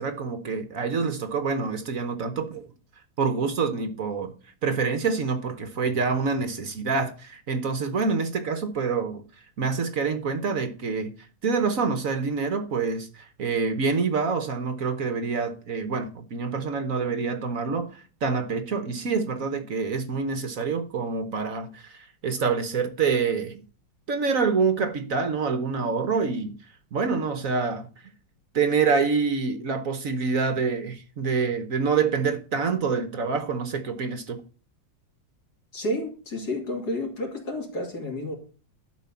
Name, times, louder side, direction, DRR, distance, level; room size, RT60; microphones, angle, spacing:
voice 1, 0.0-2.6 3.2-4.3 4.6-9.2 9.6-11.1 11.4-23.6 24.1-26.6 26.9-27.9 28.5-34.4, right 5 dB, 50° right, 1.2 m, -26 dB
voice 2, 35.7-38.3, left 1 dB, 50° left, 3.3 m, -30 dB
12.0 x 5.0 x 7.0 m
omnidirectional pair, 2.2 m